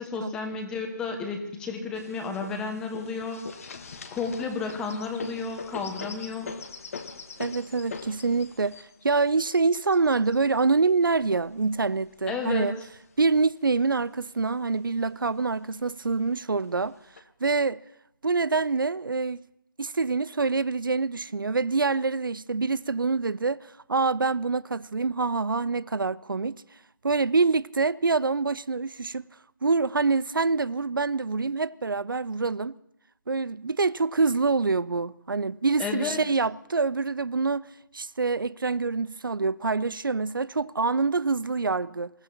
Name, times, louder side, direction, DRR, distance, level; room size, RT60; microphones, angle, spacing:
voice 1, 0.0-3.4 4.1-6.5 12.3-12.7 35.8-36.2, left 4 dB, 5° left, 1.2 m, -32 dB
sound 1, 1.9-12.2 12.9-13.8 14.2-14.3 14.6-15.3 16.0-16.1 16.8-17.2, left 5 dB, 45° left, 1.3 m, -42 dB
voice 2, 7.4-12.7 13.2-16.9 17.4-17.8 18.2-19.4 19.8-26.6 27.0-29.2 29.6-32.7 33.3-37.7 37.9-42.1, right 4 dB, 85° right, 0.5 m, -26 dB
26.5 x 15.0 x 2.9 m
figure-of-eight pair, 160°, 11 cm